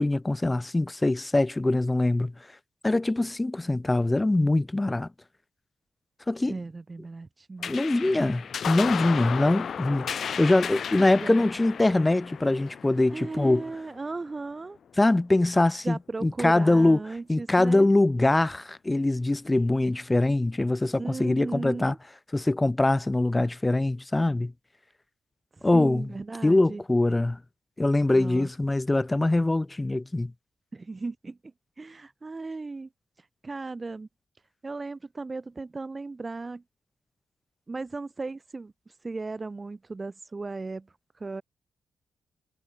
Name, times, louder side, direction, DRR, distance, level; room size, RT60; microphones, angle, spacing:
voice 1, 0.0-2.3 2.8-5.1 6.3-6.5 7.7-13.6 15.0-17.0 17.3-21.9 22.3-24.5 25.6-26.1 26.4-27.4 27.8-30.3, left 2 dB, 20° left, 1.1 m, -23 dB
voice 2, 6.4-7.7 10.1-10.2 10.7-11.5 13.1-14.8 15.8-17.9 21.0-22.0 25.5-26.8 28.1-28.5 30.7-32.9 33.2-34.1 34.6-36.6 37.7-40.9 41.2-41.4, right 3 dB, 35° right, 1.8 m, -36 dB
sound 1, 7.6-14.4, left 7 dB, 65° left, 0.8 m, -34 dB
supercardioid pair, 50°, 0 cm